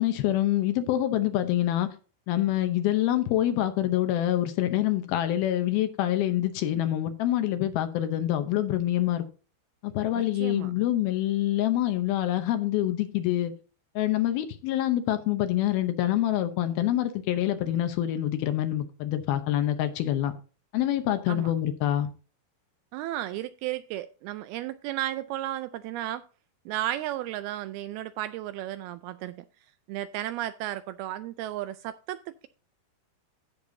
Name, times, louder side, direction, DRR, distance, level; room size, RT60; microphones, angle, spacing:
voice 1, 0.0-1.9 2.3-9.2 9.8-13.5 14.0-20.3 20.7-22.1, left 13 dB, 75° left, 2.5 m, -26 dB
voice 2, 10.1-10.7 21.3-21.5 22.9-26.2 26.7-29.5 29.9-32.5, right 14 dB, 85° right, 2.3 m, -34 dB
15.5 x 6.6 x 2.7 m
omnidirectional pair, 4.8 m